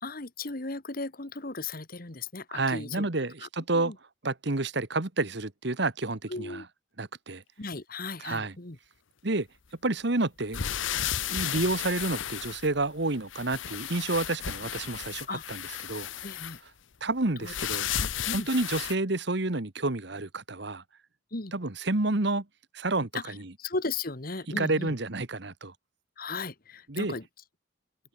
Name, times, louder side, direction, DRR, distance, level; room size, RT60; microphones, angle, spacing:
voice 1, 0.0-3.1 3.4-3.5 3.7-3.9 6.3-6.6 7.6-8.8 15.3-15.4 16.2-16.6 17.4-17.5 17.9-18.5 21.3-21.5 23.1-24.9 26.2-27.2, left 3 dB, 45° left, 1.7 m, -36 dB
voice 2, 2.5-3.9 4.2-6.6 7.0-7.4 8.2-8.5 9.2-9.5 9.8-10.6 11.3-16.1 17.0-17.9 18.3-20.8 21.5-22.4 22.7-23.5 24.5-25.7 26.9-27.1, right 2 dB, 60° right, 1.5 m, -29 dB
sound 1, 10.5-13.0 13.3-16.6 17.4-18.9, left 10 dB, 70° left, 0.9 m, -33 dB
open air
head